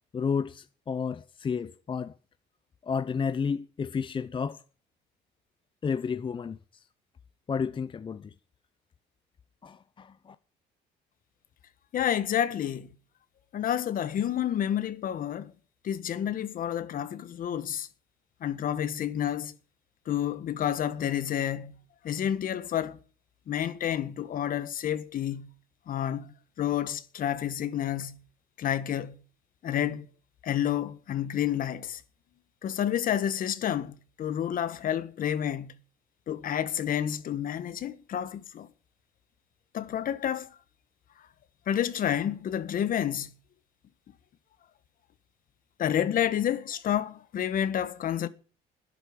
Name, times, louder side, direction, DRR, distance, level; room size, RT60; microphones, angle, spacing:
voice 1, 0.1-2.1 2.8-4.6 5.8-6.8 7.5-8.3 9.6-10.4, left 6 dB, 30° left, 0.8 m, -31 dB
voice 2, 11.9-12.9 13.5-15.5 15.8-17.9 18.4-19.5 20.1-21.7 22.0-23.0 23.5-25.5 25.9-26.3 26.6-28.2 28.6-29.2 29.6-30.0 30.4-32.0 32.6-35.7 36.3-38.7 39.7-40.5 41.7-43.3 45.8-48.3, left 10 dB, 55° left, 1.6 m, -29 dB
12.0 x 10.5 x 9.6 m
cardioid pair, 110°, 17 cm